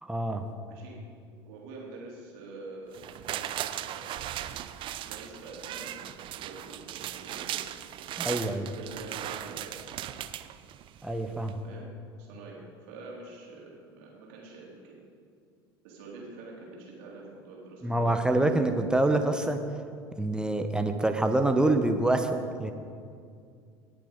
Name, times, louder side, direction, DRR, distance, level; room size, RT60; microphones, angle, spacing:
voice 1, 0.0-0.5 8.2-8.7 11.0-11.6 17.8-19.6 20.2-22.7, right 2 dB, 5° right, 6 dB, 0.9 m, -26 dB
voice 2, 0.7-1.0 1.4-4.5 5.0-7.7 8.7-10.2 11.6-11.9 12.2-15.0 15.8-18.1, right 3 dB, 60° right, -3 dB, 3.5 m, -46 dB
sound 1, 2.9-11.1 11.5-11.6, right 12 dB, 40° right, 0.6 m, -38 dB
18.5 x 7.0 x 5.1 m, 2.3 s
figure-of-eight pair, 70°, 13 cm